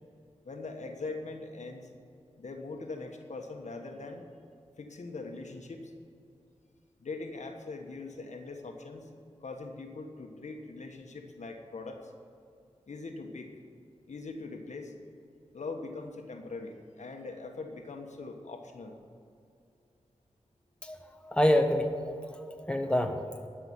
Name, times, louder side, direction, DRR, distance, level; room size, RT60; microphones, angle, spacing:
voice 1, 0.4-1.9 2.4-4.2 4.8-5.8 7.0-9.1 9.4-12.0 12.9-13.5 14.1-14.9 15.5-19.0, left 3 dB, 80° left, 3 dB, 1.3 m, -41 dB
voice 2, 21.2-22.1 22.6-23.5, left 1 dB, 10° left, 5 dB, 1.2 m, -27 dB
12.5 x 5.9 x 9.4 m, 2.5 s
cardioid pair, 50°, 12 cm